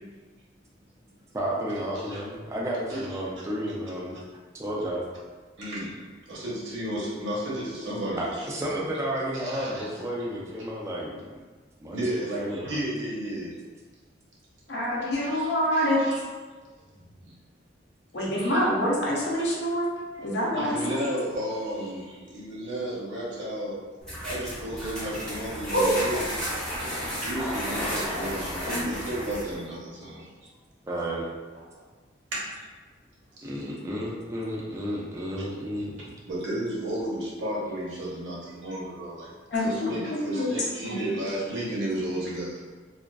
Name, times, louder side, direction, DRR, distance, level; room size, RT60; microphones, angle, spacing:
voice 1, 1.3-4.2 4.5-5.0 8.1-11.4 11.8-12.0 12.4-12.7 17.0-17.1 20.7-20.8 30.9-31.3 33.4-36.1, right 1 dB, 15° right, -4 dB, 0.3 m, -32 dB
voice 2, 2.9-3.2 5.6-8.5 9.5-9.9 11.9-13.5 15.2-16.2 17.2-17.3 18.4-18.7 19.4-19.5 20.5-23.8 24.2-26.2 26.6-26.7 27.2-30.2 32.3-32.7 33.4-33.5 36.2-39.3 39.6-42.6, right 1 dB, 85° right, -6 dB, 0.8 m, -33 dB
voice 3, 14.7-16.0 18.1-21.0 25.7-25.9 28.7-28.9 39.5-39.9 40.3-40.5 40.9-41.1, equal, 60° left, -4 dB, 0.6 m, -26 dB
sound 1, 24.0-29.6, equal, 5° left, 0.7 m, -32 dB
2.4 x 2.3 x 2.2 m, 1.4 s
head